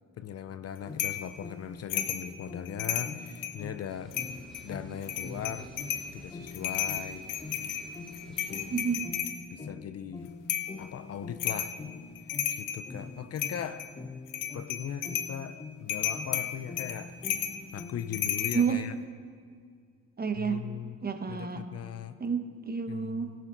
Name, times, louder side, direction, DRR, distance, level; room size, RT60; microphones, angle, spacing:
voice 1, 0.2-4.2 4.6-5.7 6.1-7.3 8.3-8.8 9.5-10.4 10.8-11.7 12.5-13.9 14.5-17.2 17.7-18.9 20.3-21.0 21.3-22.2 22.9-23.4, left 9 dB, 55° left, 12 dB, 0.6 m, -39 dB
sound 1, 0.8-18.3, left 4 dB, 20° left, 0.8 m, -45 dB
sound 2, 1.0-1.3 1.9-2.3 2.6-3.6 4.1-4.6 5.0-6.1 6.5-9.4 10.5-10.8 11.4-11.8 12.1-12.9 13.4-13.9 14.3-15.3 15.9-18.6, left 9 dB, 90° left, 0.9 m, -33 dB
sound 3, 3.9-9.0, right 1 dB, ahead, 3.4 m, -51 dB
voice 2, 8.7-9.1 18.5-18.8 20.2-20.6 21.0-21.6 22.2-23.3, right 6 dB, 30° right, 7 dB, 1.1 m, -30 dB
21.5 x 7.5 x 3.9 m, 2.1 s
cardioid pair, 90°, 30 cm